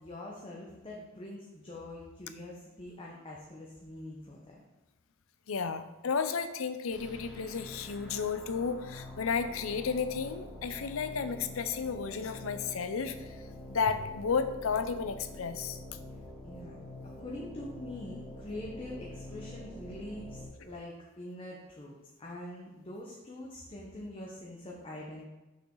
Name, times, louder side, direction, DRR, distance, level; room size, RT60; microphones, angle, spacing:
voice 1, 0.0-4.6 16.4-25.3, left 1 dB, 25° left, -3 dB, 0.9 m, -44 dB
voice 2, 5.5-13.4 13.7-15.8, left 5 dB, 75° left, 10 dB, 0.5 m, -33 dB
sound 1, 6.9-20.5, left 1 dB, ahead, 2.0 m, -46 dB
6.5 x 5.7 x 3.9 m, 1.1 s
head